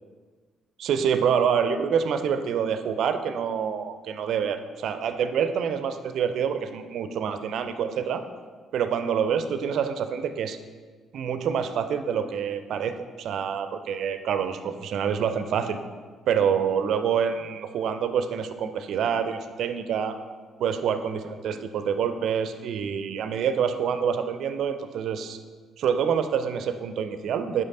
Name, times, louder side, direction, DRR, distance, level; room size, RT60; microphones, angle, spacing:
voice 1, 0.8-8.2 8.7-10.6 11.1-15.8 16.3-20.2 20.6-25.4 25.8-27.6, right 7 dB, 60° right, 9 dB, 0.4 m, -26 dB
8.0 x 5.3 x 2.7 m, 1.5 s
figure-of-eight pair, 45°, 0 cm